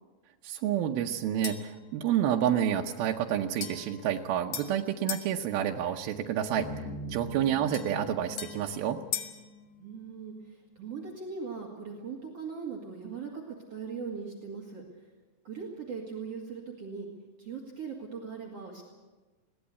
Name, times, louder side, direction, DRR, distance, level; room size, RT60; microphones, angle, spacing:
voice 1, 0.4-9.0, right 10 dB, 85° right, 1 dB, 2.8 m, -29 dB
sound 1, 1.4-1.8 3.6-5.3 7.7-9.5, left 9 dB, 60° left, 1.6 m, -39 dB
sound 2, 6.6-10.9, equal, 90° left, 3.7 m, -43 dB
voice 2, 9.8-14.8 15.4-17.1 17.4-18.8, right 5 dB, 45° right, -1 dB, 3.0 m, -40 dB
21.5 x 17.5 x 8.3 m, 1.2 s
omnidirectional pair, 4.2 m